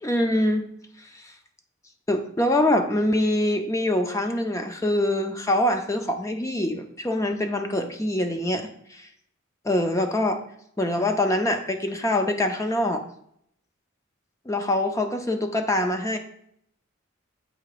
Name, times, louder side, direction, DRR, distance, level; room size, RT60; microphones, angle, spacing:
voice 1, 0.0-0.7 1.1-1.2 2.1-9.1 9.6-10.4 10.8-13.0 14.5-16.2, left 1 dB, 15° left, 5 dB, 0.6 m, -24 dB
7.9 x 3.3 x 4.9 m, 0.70 s
head